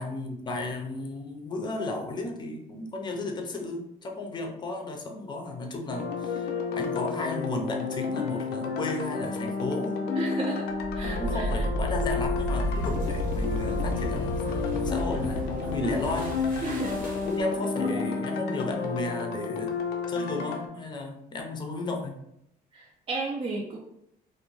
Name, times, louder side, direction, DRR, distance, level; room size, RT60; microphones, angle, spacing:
voice 1, 0.0-10.0 11.0-16.8 17.2-19.7 20.1-22.2, left 2 dB, 25° left, 2 dB, 0.5 m, -34 dB
sound 1, 5.9-20.7, left 5 dB, 75° left, 0.5 m, -31 dB
voice 2, 10.2-10.7 10.9-11.4 16.6-17.0 17.8-18.0 22.7-23.8, right 3 dB, 30° right, -4 dB, 0.4 m, -33 dB
sound 2, 10.7-17.6, equal, 55° right, 0.8 m, -32 dB
2.5 x 2.1 x 3.0 m, 0.79 s
cardioid pair, 110°, 17 cm